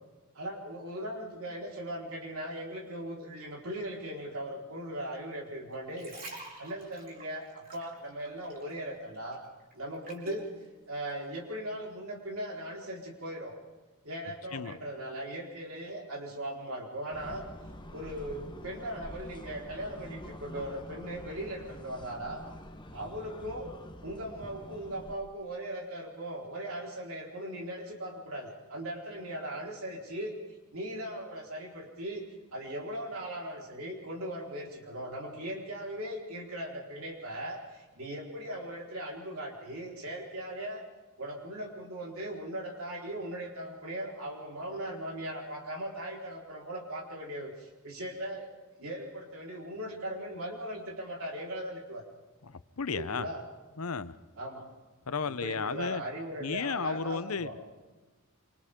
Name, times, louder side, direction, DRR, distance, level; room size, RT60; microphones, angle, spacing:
voice 1, 0.3-9.4 9.7-10.5 10.9-13.6 14.0-17.5 17.9-22.4 22.9-23.7 24.0-30.4 30.7-32.2 32.5-40.9 41.2-48.5 48.8-52.0 52.9-53.4 54.4-54.7 55.3-57.6, right 1 dB, 70° right, -1 dB, 4.6 m, -39 dB
sound 1, 5.7-8.8 9.1-10.5 11.1-11.2, right 1 dB, 40° right, 4.4 m, -47 dB
sound 2, 17.1-25.2, left 1 dB, 20° left, 1.2 m, -46 dB
voice 2, 52.5-53.3 53.8-54.1 55.1-56.0 56.4-57.5, left 5 dB, 75° left, 14 dB, 0.8 m, -33 dB
27.5 x 26.5 x 3.8 m, 1.2 s
head